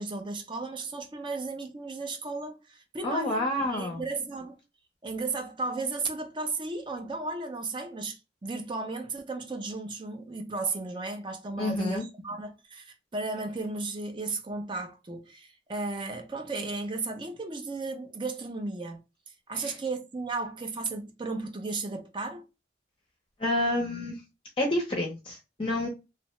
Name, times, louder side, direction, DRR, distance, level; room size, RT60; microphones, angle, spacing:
voice 1, 0.0-4.6 5.0-19.0 19.5-22.4, right 3 dB, 25° right, 0.5 m, -34 dB
voice 2, 3.0-4.0 11.6-12.0 19.5-19.7 23.4-24.2 24.6-25.9, left 1 dB, 30° left, 0.6 m, -29 dB
2.7 x 2.1 x 2.9 m
head